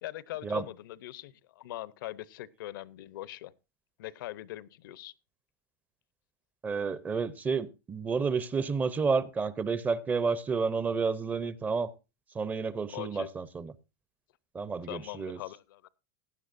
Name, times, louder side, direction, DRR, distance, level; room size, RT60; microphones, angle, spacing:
voice 1, 0.0-3.5 4.0-5.1 12.9-13.4 14.9-15.9, left 15 dB, 70° left, 0.7 m, -41 dB
voice 2, 6.6-11.9 12.3-13.7 14.5-15.4, right 5 dB, 15° right, 0.6 m, -30 dB
16.5 x 10.5 x 2.6 m
supercardioid pair, 150°, 11 cm